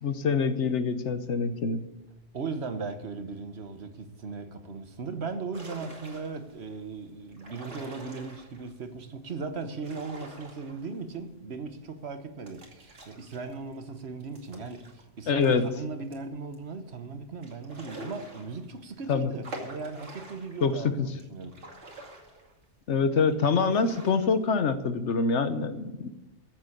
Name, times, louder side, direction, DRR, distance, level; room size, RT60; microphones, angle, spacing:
voice 1, 0.0-1.8 15.3-15.7 19.1-19.3 20.6-21.1 22.9-26.1, left 5 dB, 75° left, 1.3 m, -25 dB
voice 2, 2.3-21.8 23.1-23.2, right 4 dB, 65° right, 1.4 m, -38 dB
sound 1, 5.5-6.6 7.3-8.7 9.6-11.2 11.5-11.6 12.5-15.7 16.1-16.2 16.5-16.6 17.4-18.9 19.4-20.7 21.2-22.8 23.3-24.4, right 1 dB, 80° right, 2.7 m, -46 dB
14.5 x 7.6 x 8.4 m
omnidirectional pair, 1.2 m